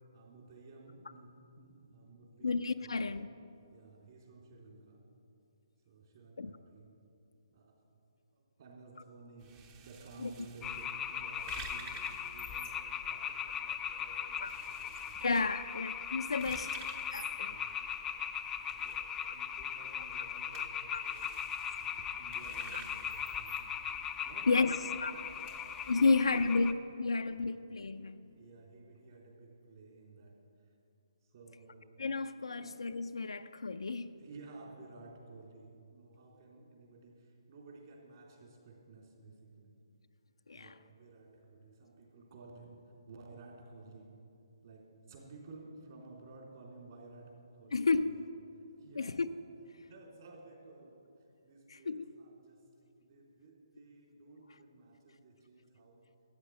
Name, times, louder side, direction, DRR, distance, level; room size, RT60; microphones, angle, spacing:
voice 1, 0.1-3.1 3.7-5.0 5.9-6.9 7.5-7.7 8.3-9.6 9.8-15.3 16.4-16.7 17.4-18.0 18.6-23.9 24.2-25.7 26.0-26.7 27.4-27.6 28.2-30.4 30.6-30.7 31.2-31.9 32.5-32.7 34.2-39.8 40.5-42.8 43.1-44.1 44.6-48.3 48.8-49.2 49.8-51.1 51.4-52.7 53.0-56.0, right 3 dB, 45° right, -1 dB, 3.4 m, -54 dB
voice 2, 2.4-3.3 6.4-6.5 10.2-10.3 14.4-14.5 15.2-16.7 17.1-17.6 20.6-20.7 20.9-21.0 24.5-25.1 25.9-28.2 32.0-34.1 40.5-40.7 47.7-48.2 49.0-49.3 51.7-52.1, left 4 dB, 90° left, 8 dB, 0.5 m, -32 dB
sound 1, 9.4-26.5, right 6 dB, 20° right, 0.8 m, -54 dB
sound 2, 10.6-26.7, left 8 dB, 10° left, 0.4 m, -39 dB
13.0 x 9.3 x 7.6 m, 2.7 s
hypercardioid pair, 155°, 3 cm